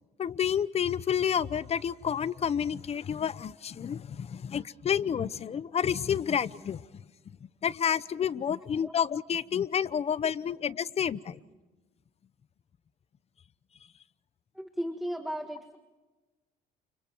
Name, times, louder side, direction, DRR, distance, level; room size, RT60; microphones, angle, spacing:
voice 1, 0.2-6.8 7.6-11.4, left 8 dB, 40° left, 17 dB, 0.9 m, -29 dB
voice 2, 14.5-15.8, equal, ahead, 6 dB, 1.7 m, -35 dB
30.0 x 29.0 x 4.6 m, 1.2 s
cardioid pair, 110°, 17 cm